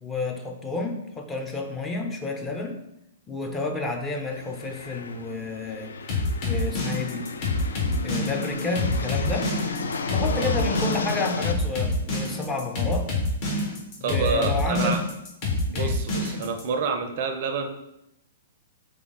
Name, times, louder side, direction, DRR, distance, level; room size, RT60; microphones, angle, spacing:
voice 1, 0.0-2.8 3.3-5.9 6.4-7.3 8.0-9.5 10.1-13.1 14.0-15.0 15.7-16.0, left 3 dB, 15° left, 2 dB, 0.6 m, -30 dB
sound 1, 4.3-11.5, left 4 dB, 65° left, 0.3 m, -33 dB
sound 2, 6.1-16.6, left 3 dB, 40° left, 1.3 m, -27 dB
voice 2, 14.0-15.0 15.7-17.7, right 5 dB, 45° right, 7 dB, 0.4 m, -28 dB
3.7 x 3.3 x 3.8 m, 0.84 s
figure-of-eight pair, 110°, 0 cm